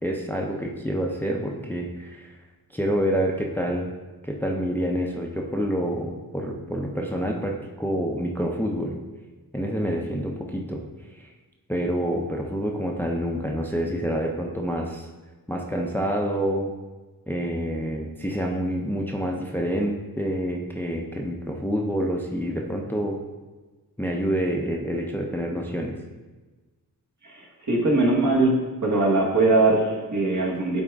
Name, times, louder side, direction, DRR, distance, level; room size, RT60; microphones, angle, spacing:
voice 1, 0.0-2.3 2.7-3.9 4.2-9.0 9.5-10.8 11.2-11.3 11.7-15.1 15.5-16.7 17.3-23.2 24.0-26.0, equal, 5° left, 0 dB, 0.5 m, -27 dB
voice 2, 27.2-28.5 28.8-30.8, right 2 dB, 55° right, -2 dB, 1.4 m, -21 dB
8.6 x 3.6 x 3.5 m, 1.2 s
wide cardioid pair, 100°, 36 cm